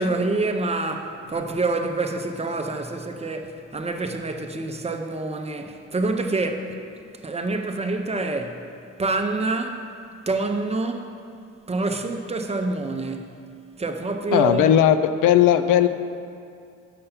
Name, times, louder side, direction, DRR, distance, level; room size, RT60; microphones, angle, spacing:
voice 1, 0.0-6.8 7.2-8.7 9.0-9.9 10.3-11.1 11.7-13.4 13.8-14.7, right 2 dB, 20° right, 0.6 m, -27 dB
voice 2, 14.3-15.9, left 10 dB, 90° left, 0.5 m, -17 dB
6.8 x 5.5 x 5.6 m
cardioid pair, 90°, 30 cm